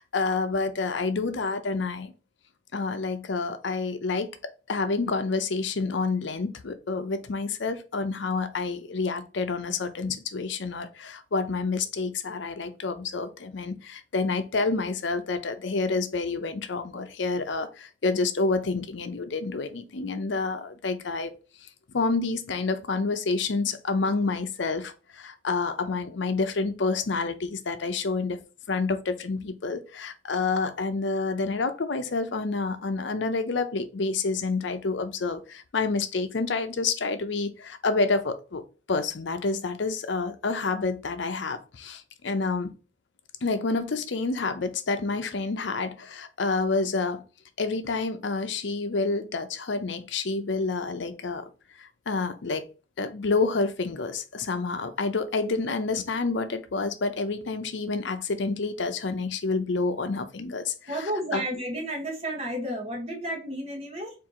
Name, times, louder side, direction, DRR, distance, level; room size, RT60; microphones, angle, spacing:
voice 1, 0.0-2.1 2.7-4.3 4.7-21.3 21.9-28.4 28.7-38.6 38.9-42.7 43.4-47.2 47.6-51.5 51.8-52.7 53.0-61.4, left 3 dB, 65° left, 0.6 m, -28 dB
voice 2, 60.9-64.1, right 1 dB, 30° right, 0.9 m, -32 dB
4.4 x 2.6 x 3.7 m
head